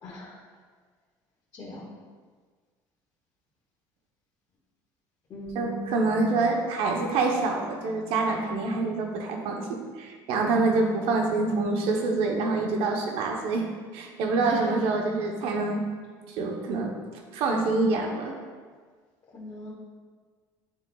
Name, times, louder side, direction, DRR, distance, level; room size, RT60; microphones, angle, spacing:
voice 1, 0.0-0.3 1.5-1.9 5.3-6.0 14.4-14.7 19.3-19.7, equal, 40° left, -8 dB, 1.7 m, -39 dB
voice 2, 5.5-13.7 13.9-15.8 16.3-16.9 17.3-18.3, right 3 dB, 70° right, 1 dB, 0.9 m, -26 dB
11.0 x 3.8 x 2.3 m, 1.5 s
cardioid pair, 115°, 10 cm